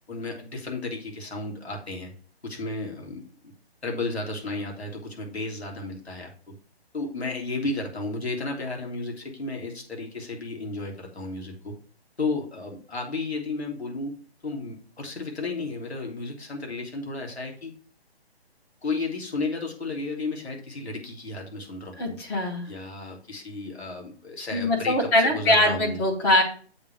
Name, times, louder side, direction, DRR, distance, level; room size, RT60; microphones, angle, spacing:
voice 1, 0.1-2.1 2.4-3.5 3.8-6.6 6.9-11.7 12.2-17.7 18.8-22.2 22.6-26.0, left 3 dB, 80° left, -1 dB, 3.3 m, -33 dB
voice 2, 22.0-22.6 24.5-26.4, left 1 dB, 5° left, 0 dB, 0.7 m, -22 dB
7.8 x 3.8 x 6.4 m, 0.42 s
figure-of-eight pair, 145°, 32 cm